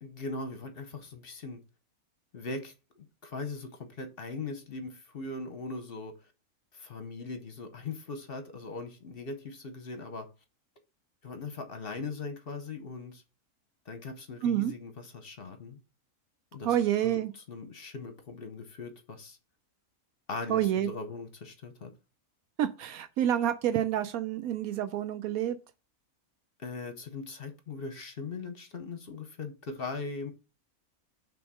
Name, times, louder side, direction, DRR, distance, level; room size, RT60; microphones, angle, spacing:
voice 1, 0.0-1.6 2.3-6.1 6.7-10.3 11.2-13.2 13.9-15.8 16.5-17.2 17.5-19.4 20.3-21.9 26.6-30.3, left 3 dB, 45° left, 0.9 m, -40 dB
voice 2, 16.6-17.3 20.5-20.9 22.6-25.6, right 11 dB, 80° right, 1.0 m, -28 dB
6.0 x 3.6 x 6.0 m
omnidirectional pair, 1.5 m